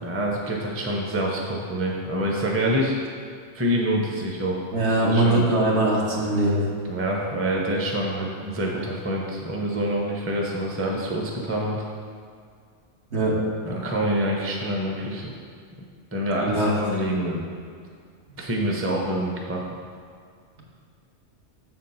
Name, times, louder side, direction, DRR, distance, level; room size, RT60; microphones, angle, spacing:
voice 1, 0.0-2.9 3.5-4.7 5.0-5.5 6.9-11.8 13.6-15.3 16.1-17.5 18.4-19.6, equal, 15° right, -1 dB, 0.6 m, -26 dB
voice 2, 4.7-6.6 13.1-13.4 16.4-16.7 18.3-18.4, right 2 dB, 65° right, -4 dB, 1.6 m, -21 dB
7.0 x 4.4 x 5.6 m, 2.2 s
omnidirectional pair, 1.2 m